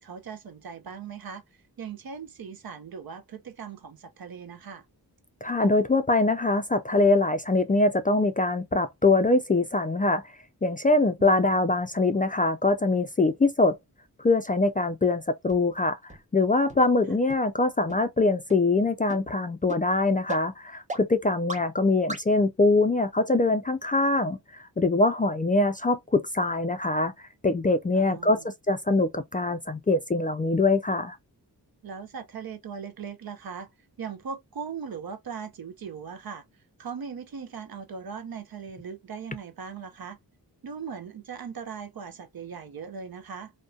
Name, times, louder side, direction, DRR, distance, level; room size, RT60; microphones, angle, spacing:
voice 1, 0.0-1.4 1.8-4.9 11.2-11.6 27.9-28.5 31.8-33.7 34.0-36.4 36.8-40.2 40.6-43.5, right 6 dB, 65° right, 0.6 m, -39 dB
voice 2, 5.4-10.2 10.6-13.8 14.2-16.0 16.3-24.4 24.8-27.1 27.4-28.4 28.7-31.2, left 2 dB, 20° left, 0.3 m, -23 dB
sound 1, 15.5-15.6 16.1-16.2 16.7-16.8 17.3-17.4 17.9-18.0 18.5-18.6 19.1-19.2 19.7-19.8 20.3-20.4 20.9-21.0 21.5-21.6 22.1-22.2, right 2 dB, 20° right, 0.8 m, -35 dB
2.6 x 2.2 x 2.2 m
cardioid pair, 50°, 39 cm